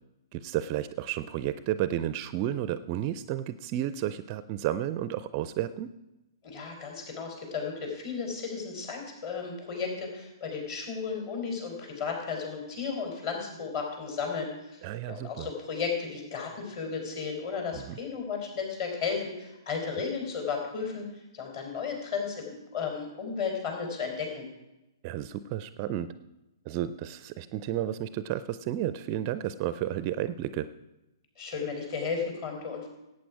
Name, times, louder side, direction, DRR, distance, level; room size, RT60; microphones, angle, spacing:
voice 1, 0.3-5.9 14.8-15.5 17.7-18.0 25.0-26.1 26.7-30.7, right 12 dB, 30° right, 14 dB, 0.5 m, -32 dB
voice 2, 6.4-14.8 15.1-24.5 31.4-32.9, left 5 dB, 40° left, 2 dB, 4.1 m, -34 dB
17.5 x 8.7 x 4.8 m, 0.99 s
figure-of-eight pair, 120°, 2 cm